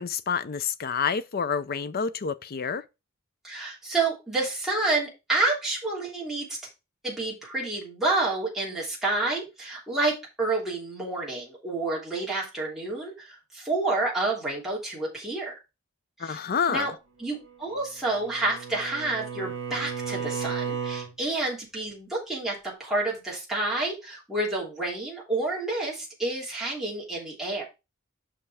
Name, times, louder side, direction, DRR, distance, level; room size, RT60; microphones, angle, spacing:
voice 1, 0.0-2.8 16.2-16.9, left 6 dB, 50° left, 0.5 m, -28 dB
voice 2, 3.4-6.6 7.0-15.5 16.2-16.4 16.7-16.9 17.2-27.6, right 2 dB, ahead, 3.1 m, -29 dB
Bowed string instrument, 17.7-21.1, right 6 dB, 65° right, 2.9 m, -34 dB
5.9 x 5.6 x 4.8 m
head